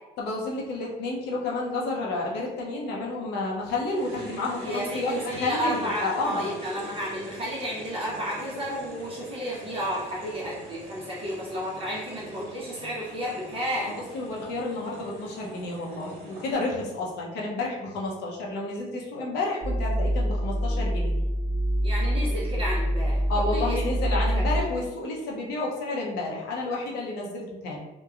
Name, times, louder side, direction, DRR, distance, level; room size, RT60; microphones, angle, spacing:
voice 1, 0.2-6.4 13.9-21.1 23.3-27.8, left 2 dB, 85° left, -3 dB, 0.7 m, -30 dB
sound 1, 3.9-16.5, equal, 50° right, 1.1 m, -44 dB
voice 2, 4.6-14.0 21.8-23.2 23.5-23.8 24.1-24.7, equal, 35° right, -7 dB, 0.7 m, -32 dB
sound 2, 19.6-24.6, equal, 35° left, 1.1 m, -25 dB
2.8 x 2.2 x 2.4 m, 1.1 s
cardioid pair, 110°, 17 cm